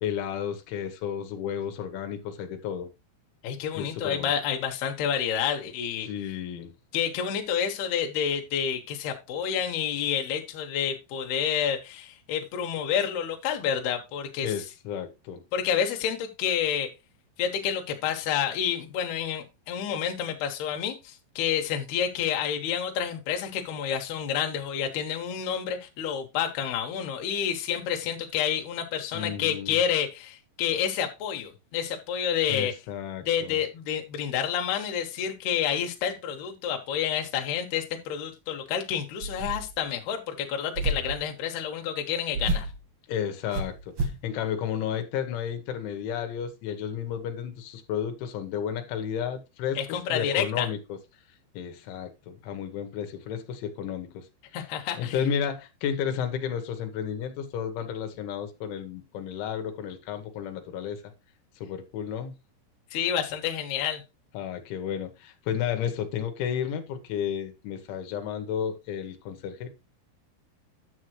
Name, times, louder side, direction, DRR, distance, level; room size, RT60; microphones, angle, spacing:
voice 1, 0.0-2.9 3.7-4.3 6.0-6.7 14.4-15.4 29.1-29.8 32.5-33.6 43.1-51.0 51.5-54.2 54.9-61.0 61.6-62.3 64.3-69.7, left 8 dB, 85° left, 3.5 m, -32 dB
voice 2, 3.4-6.1 6.9-14.5 15.5-16.9 17.4-32.7 33.3-42.7 49.8-50.7 54.5-55.2 62.9-64.0, left 8 dB, 70° left, 3.0 m, -29 dB
sound 1, 39.2-39.8 40.7-41.2 42.3-42.8 43.5-44.2, right 2 dB, 70° right, 1.4 m, -30 dB
10.0 x 7.3 x 3.1 m
omnidirectional pair, 5.3 m